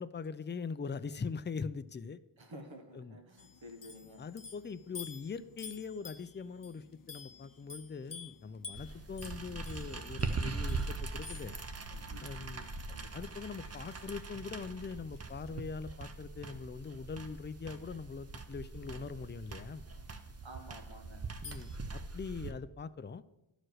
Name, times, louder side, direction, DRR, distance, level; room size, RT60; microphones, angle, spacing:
voice 1, 0.0-2.2 2.9-3.2 4.2-11.6 12.2-12.7 13.1-19.8 21.4-23.2, left 5 dB, 25° left, 14 dB, 0.3 m, -42 dB
voice 2, 2.4-4.3 12.4-13.3 20.4-21.2, equal, 70° right, 4 dB, 1.5 m, -52 dB
sound 1, 3.4-15.6 17.7-17.8 19.0-21.8, left 5 dB, 45° left, 0.7 m, -53 dB
sound 2, 8.7-22.5, right 3 dB, 30° right, 0.7 m, -41 dB
11.5 x 4.8 x 6.3 m, 0.94 s
wide cardioid pair, 90°, 48 cm